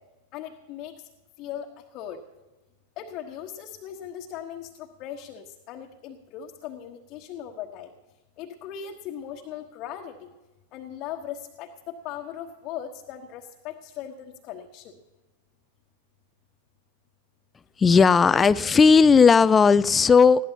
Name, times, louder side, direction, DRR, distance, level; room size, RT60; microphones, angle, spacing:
voice 1, 0.3-0.9 1.4-1.7 1.9-2.2 3.0-7.9 8.4-10.3 10.7-14.9, left 9 dB, 40° left, 0 dB, 1.3 m, -38 dB
voice 2, 17.8-20.5, left 5 dB, 20° left, 18 dB, 0.4 m, -16 dB
20.5 x 16.0 x 2.9 m, 1.1 s
figure-of-eight pair, 90°, 0 cm